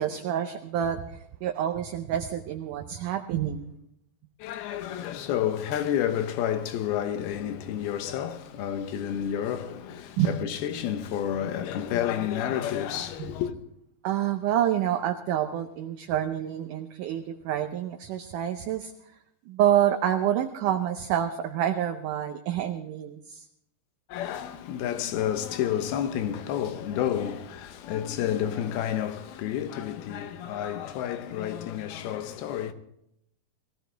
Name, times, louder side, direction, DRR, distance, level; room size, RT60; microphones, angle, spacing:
voice 1, 0.0-3.8 10.2-10.4 13.2-13.3 14.0-18.9 19.5-23.5, right 10 dB, 80° right, 1.9 m, -28 dB
voice 2, 4.4-13.5 24.1-32.7, left 10 dB, 80° left, 2.9 m, -30 dB
21.5 x 15.5 x 3.4 m
omnidirectional pair, 4.4 m